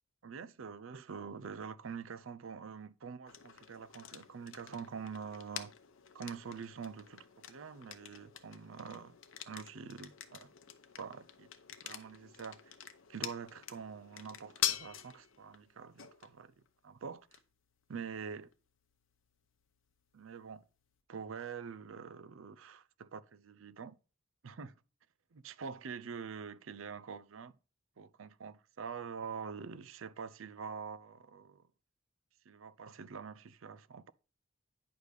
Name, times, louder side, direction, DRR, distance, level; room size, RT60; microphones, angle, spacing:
voice 1, 0.2-5.7 6.1-9.2 9.5-10.5 11.0-11.5 11.8-12.7 13.1-16.5 16.8-17.4 17.9-18.5 20.1-20.7 21.1-24.0 24.4-24.7 25.3-27.6 28.0-31.7 32.4-34.1, right 6 dB, 75° right, 0.5 m, -45 dB
sound 1, 3.3-21.0, left 11 dB, 70° left, 0.8 m, -46 dB
9.8 x 3.4 x 6.5 m
head